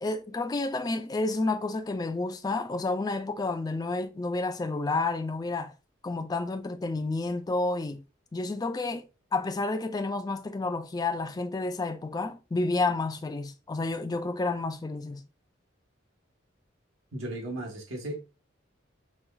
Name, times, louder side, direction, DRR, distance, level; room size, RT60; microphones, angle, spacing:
voice 1, 0.0-5.7 6.0-8.0 8.3-9.0 9.3-15.2, left 3 dB, 20° left, 0.3 m, -30 dB
voice 2, 17.1-18.2, right 1 dB, 85° right, 1.1 m, -35 dB
5.3 x 2.3 x 2.3 m
head